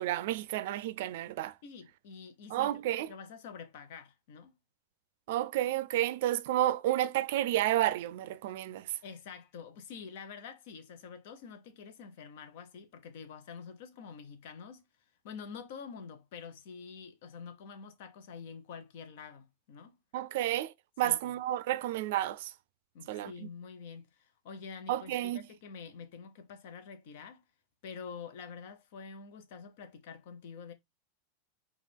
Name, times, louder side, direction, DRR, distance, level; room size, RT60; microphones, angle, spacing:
voice 1, 0.0-1.5 2.5-3.1 5.3-8.9 20.1-22.5 23.1-23.5 24.9-25.4, right 13 dB, 65° right, 0.4 m, -31 dB
voice 2, 1.6-4.5 9.0-14.8 15.2-20.0 21.0-21.3 22.9-27.4 27.8-30.7, left 6 dB, 65° left, 0.8 m, -47 dB
4.7 x 2.4 x 3.4 m
supercardioid pair, 150°, 0 cm